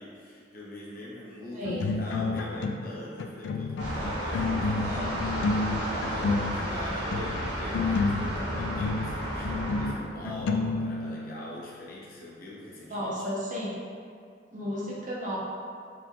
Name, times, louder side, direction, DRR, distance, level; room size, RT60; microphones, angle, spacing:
voice 1, 0.0-5.1 5.8-13.3, left 1 dB, 50° left, -6 dB, 0.9 m, -42 dB
voice 2, 1.5-1.9 12.9-13.7 14.5-15.4, equal, 45° right, -6 dB, 0.8 m, -33 dB
sound 1, 1.6-2.9 3.2-11.3, left 3 dB, 90° left, 0.3 m, -30 dB
sound 2, 3.8-9.9, right 1 dB, 75° right, 1.1 m, -32 dB
sound 3, 5.8-10.8, equal, 5° right, 1.1 m, -49 dB
4.7 x 3.5 x 2.4 m, 2.3 s
head